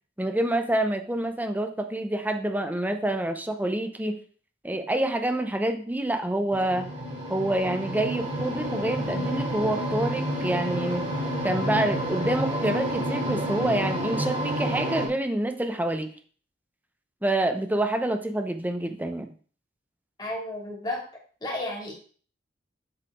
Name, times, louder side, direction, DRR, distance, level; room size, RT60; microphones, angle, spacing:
voice 1, 0.2-4.2 4.6-6.9 7.3-11.1 11.4-16.1 17.2-19.3, right 1 dB, 10° right, 6 dB, 0.7 m, -27 dB
sound 1, 6.5-15.1, equal, 30° right, 2.5 m, -29 dB
voice 2, 20.2-21.1 21.4-21.9, left 1 dB, 25° left, -2 dB, 2.4 m, -32 dB
7.7 x 4.2 x 4.8 m, 0.43 s
head